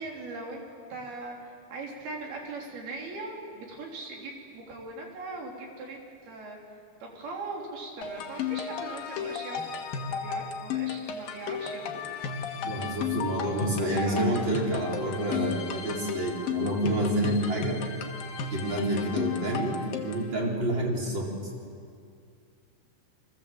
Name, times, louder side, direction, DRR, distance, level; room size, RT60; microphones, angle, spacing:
voice 1, 0.0-1.4 1.7-9.8 10.1-12.0 13.4-13.6 13.9-14.3, right 3 dB, 70° right, 0 dB, 5.4 m, -40 dB
sound 1, 8.0-20.3, left 6 dB, 70° left, 3.1 m, -34 dB
voice 2, 12.7-17.8 18.5-21.3, right 1 dB, 30° right, -1 dB, 4.7 m, -28 dB
29.5 x 23.0 x 7.7 m, 2.3 s
omnidirectional pair, 4.5 m